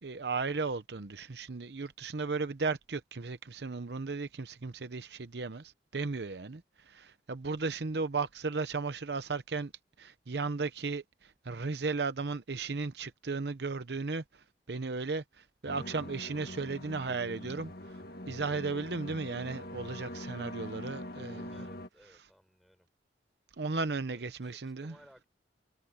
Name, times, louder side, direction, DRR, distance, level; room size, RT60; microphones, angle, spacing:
voice 1, 0.0-9.7 10.0-18.0 18.3-21.5 23.6-24.9, right 4 dB, 70° right, 0.8 m, -35 dB
sound 1, 15.7-21.9, left 1 dB, 60° left, 1.9 m, -43 dB
voice 2, 21.5-22.9 24.1-25.3, equal, ahead, 5.4 m, -60 dB
head